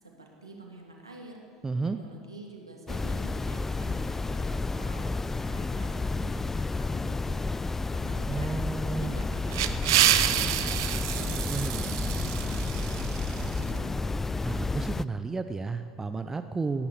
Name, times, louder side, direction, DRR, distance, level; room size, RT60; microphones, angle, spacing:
voice 1, 0.0-1.4 1.8-5.1 5.5-8.5 8.7-14.1, right 2 dB, 85° right, -1 dB, 2.7 m, -47 dB
voice 2, 1.6-2.0 8.3-9.1 11.5-11.8 14.4-16.9, right 4 dB, 15° right, 9 dB, 0.7 m, -32 dB
sound 1, 2.9-15.0, left 3 dB, 15° left, 0.3 m, -31 dB
sound 2, 9.2-13.7, right 13 dB, 60° right, 0.7 m, -28 dB
17.5 x 10.0 x 8.1 m, 2.2 s
figure-of-eight pair, 70°, 3 cm